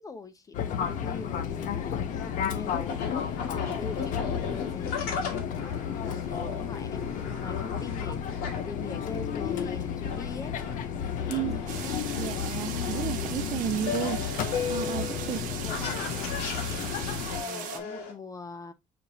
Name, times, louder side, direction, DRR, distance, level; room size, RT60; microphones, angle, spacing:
voice 1, 0.0-10.5 11.1-12.0 13.7-13.8 15.5-17.1 17.4-18.7, left 4 dB, 25° left, 0.5 m, -43 dB
Fixed-wing aircraft airplane, 0.5-17.4, left 8 dB, 60° left, 0.7 m, -33 dB
sound 1, 1.5-18.1, left 6 dB, 85° left, 1.7 m, -37 dB
voice 2, 11.3-11.7 12.2-15.6, right 10 dB, 40° right, 0.3 m, -33 dB
sound 2, 11.7-17.8, right 9 dB, 65° right, 0.8 m, -39 dB
6.8 x 2.9 x 2.7 m
cardioid pair, 155°, 15 cm